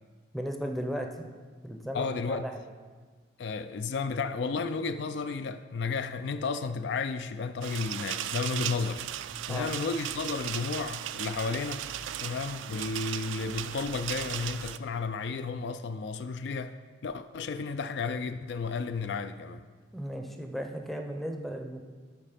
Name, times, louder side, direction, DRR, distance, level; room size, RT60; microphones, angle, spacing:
voice 1, 0.3-1.3 1.6-2.6 9.5-9.7 19.9-21.8, equal, ahead, 3 dB, 0.6 m, -36 dB
voice 2, 1.9-2.4 3.4-9.1 9.5-11.8 12.2-16.7 17.0-19.6, left 4 dB, 65° left, 10 dB, 0.3 m, -33 dB
sound 1, 7.6-14.8, right 11 dB, 80° right, 0.3 m, -36 dB
11.0 x 4.2 x 5.1 m, 1.5 s
head